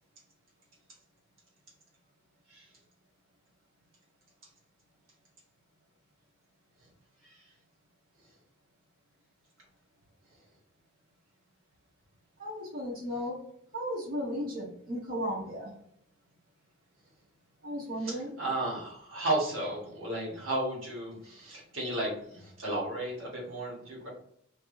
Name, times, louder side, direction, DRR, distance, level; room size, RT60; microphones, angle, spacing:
voice 1, 12.4-13.4 13.7-15.7 17.6-18.3, equal, 50° right, -5 dB, 1.0 m, -35 dB
voice 2, 18.0-24.1, right 1 dB, 90° right, -4 dB, 1.5 m, -34 dB
3.3 x 2.7 x 2.6 m, 0.69 s
head